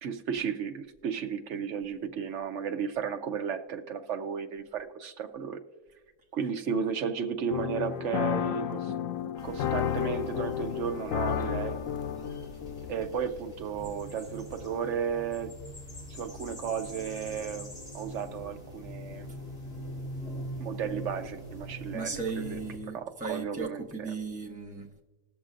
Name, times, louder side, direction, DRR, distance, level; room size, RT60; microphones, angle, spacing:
voice 1, 0.0-5.6 6.3-8.9 9.4-11.8 12.9-15.5 16.1-19.3 20.6-22.6 22.9-24.1, right 7 dB, 65° right, 1.1 m, -34 dB
sound 1, 7.5-13.1, left 9 dB, 90° left, 1.0 m, -32 dB
sound 2, 9.4-22.8, equal, 40° left, 2.9 m, -43 dB
voice 2, 21.9-25.0, right 4 dB, 5° right, 0.9 m, -36 dB
20.0 x 6.9 x 2.5 m
omnidirectional pair, 1.4 m